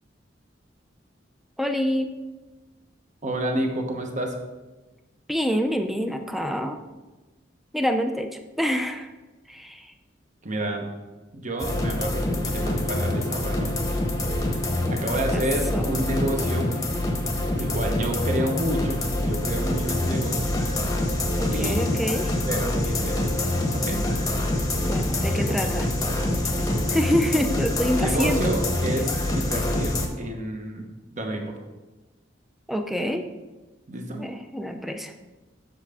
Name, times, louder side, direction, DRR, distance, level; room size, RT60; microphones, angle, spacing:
voice 1, 1.6-2.1 5.3-6.8 7.7-9.1 9.5-9.9 15.3-15.4 15.7-15.9 21.4-22.3 24.8-25.9 26.9-28.4 32.7-33.3 34.2-35.1, equal, ahead, 6 dB, 0.5 m, -26 dB
voice 2, 3.2-4.4 10.4-10.9 11.3-14.0 14.9-16.7 17.5-20.5 21.5-21.8 22.5-23.3 23.7-24.1 25.5-25.7 26.4-26.9 27.9-31.5 33.9-34.3, right 1 dB, 40° right, 3 dB, 1.0 m, -29 dB
sound 1, 11.6-30.1, left 1 dB, 20° left, 0.9 m, -25 dB
7.3 x 6.7 x 3.6 m, 1.1 s
head